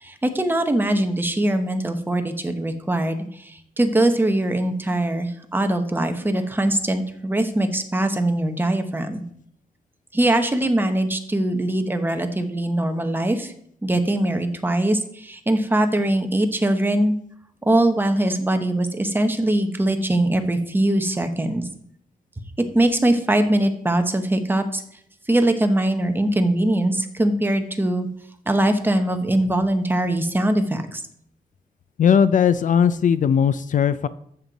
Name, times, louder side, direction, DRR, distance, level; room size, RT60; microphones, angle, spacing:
voice 1, 0.0-9.2 10.1-13.5 13.8-17.1 17.6-21.6 22.7-24.8 25.3-28.1 28.5-31.0, right 1 dB, 15° right, 6 dB, 1.0 m, -22 dB
voice 2, 32.0-34.1, left 7 dB, 55° left, 14 dB, 0.4 m, -18 dB
12.5 x 7.7 x 4.0 m, 0.66 s
wide cardioid pair, 160°, 16 cm